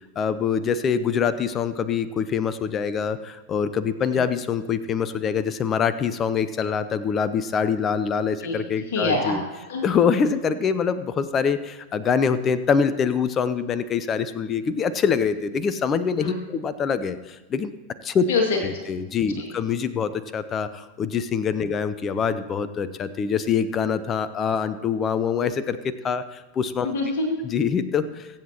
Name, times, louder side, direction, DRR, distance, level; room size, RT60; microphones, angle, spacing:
voice 1, 0.2-9.4 9.8-17.7 18.0-18.2 18.6-26.9 27.4-28.3, left 6 dB, 25° left, 14 dB, 0.6 m, -24 dB
voice 2, 8.4-9.9 16.2-16.4 18.3-18.6 19.2-19.5 26.8-27.4, left 3 dB, 55° left, 1 dB, 2.2 m, -26 dB
23.0 x 8.1 x 3.0 m, 1.1 s
figure-of-eight pair, 90°, 0 cm